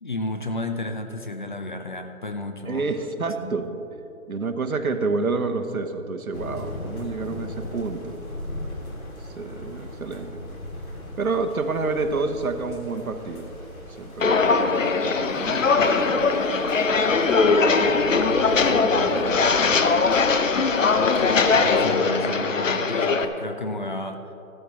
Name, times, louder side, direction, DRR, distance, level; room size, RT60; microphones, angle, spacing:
voice 1, 0.0-3.1 3.4-3.6 21.0-24.3, left 2 dB, 35° left, 6 dB, 0.7 m, -32 dB
voice 2, 2.6-3.7 4.3-8.2 9.2-10.4 11.2-13.5 14.0-16.3 17.0-20.1, right 3 dB, 90° right, 7 dB, 1.2 m, -29 dB
sound 1, 6.3-22.0, left 1 dB, 80° left, 2.8 m, -38 dB
Walk footsteps, 14.2-23.2, left 4 dB, 65° left, 0.9 m, -20 dB
15.0 x 12.5 x 3.1 m, 2.8 s
hypercardioid pair, 170°, 42 cm